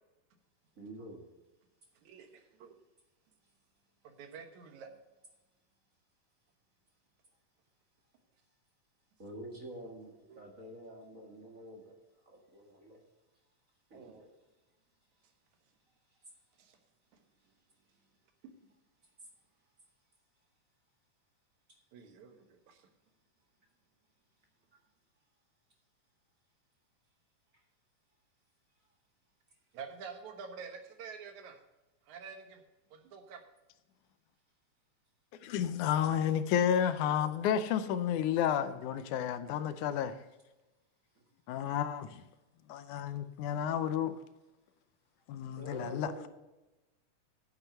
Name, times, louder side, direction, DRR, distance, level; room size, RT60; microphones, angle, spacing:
voice 1, 0.7-1.3 9.2-11.9 12.2-13.0 13.9-14.3 16.1-16.2 41.1-41.2 45.6-46.3, right 1 dB, 35° right, 1.6 m, -47 dB
voice 2, 2.0-2.8 4.0-4.9 10.3-10.4 13.9-14.3 16.6-16.8 18.4-18.5 21.9-22.9 29.7-31.6 32.1-32.6 32.9-33.4 40.0-40.2, right 6 dB, 70° right, 2.5 m, -48 dB
voice 3, 35.4-40.1 41.5-42.2 42.7-44.2 45.3-46.3, left 9 dB, 80° left, 2.1 m, -31 dB
9.1 x 7.8 x 6.7 m
omnidirectional pair, 3.6 m